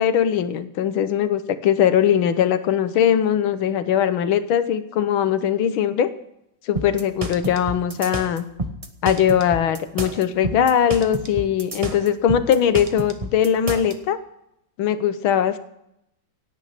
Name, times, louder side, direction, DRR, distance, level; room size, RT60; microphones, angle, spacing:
voice 1, 0.0-6.1 6.7-8.5 9.0-14.2 14.8-15.6, left 9 dB, 80° left, 12 dB, 1.8 m, -20 dB
sound 1, 6.8-13.9, right 2 dB, 30° right, 0.7 m, -30 dB
17.0 x 9.6 x 5.9 m, 0.80 s
omnidirectional pair, 2.2 m